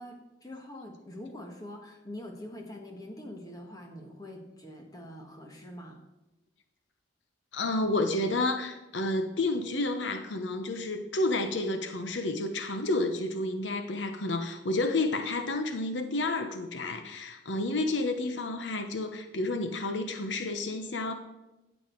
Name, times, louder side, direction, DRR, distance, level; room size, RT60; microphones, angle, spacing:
voice 1, 0.0-6.1, left 1 dB, 20° left, 2 dB, 1.6 m, -44 dB
voice 2, 7.5-21.1, left 2 dB, 80° left, 7 dB, 0.9 m, -30 dB
13.5 x 7.6 x 4.6 m, 1.0 s
head